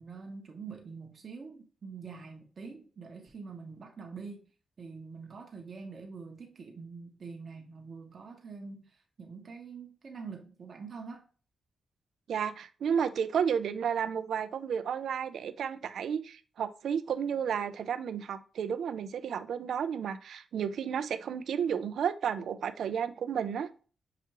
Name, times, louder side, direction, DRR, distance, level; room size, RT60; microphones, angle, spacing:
voice 1, 0.0-4.5 4.8-11.2, right 5 dB, 50° right, 0.7 m, -45 dB
voice 2, 12.3-23.7, right 7 dB, 80° right, 0.3 m, -32 dB
5.6 x 2.4 x 2.9 m
cardioid pair, 85°, 0 cm